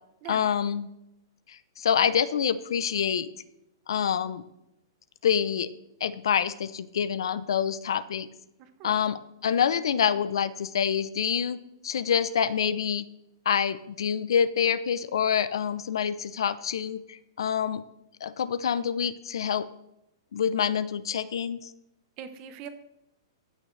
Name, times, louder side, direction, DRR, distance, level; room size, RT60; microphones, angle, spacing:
voice 1, 0.3-0.9 1.5-3.3 3.9-4.4 5.2-5.7 6.0-8.3 8.8-11.6 11.8-13.1 13.5-17.8 18.2-19.7 20.3-21.7, left 8 dB, 75° left, 16 dB, 0.6 m, -26 dB
voice 2, 22.2-22.7, right 8 dB, 30° right, 10 dB, 0.8 m, -41 dB
15.0 x 6.4 x 3.2 m, 0.85 s
hypercardioid pair, 170°, 3 cm